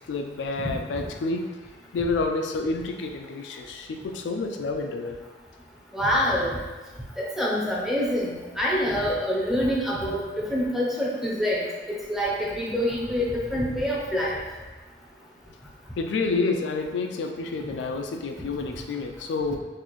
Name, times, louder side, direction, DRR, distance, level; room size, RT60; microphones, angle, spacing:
voice 1, 0.1-1.5 1.9-5.2 16.0-19.6, left 3 dB, 80° left, 4 dB, 0.3 m, -29 dB
voice 2, 5.9-6.5 7.2-10.2 10.5-14.4, equal, ahead, -5 dB, 0.6 m, -26 dB
4.0 x 2.5 x 3.0 m, 1.3 s
head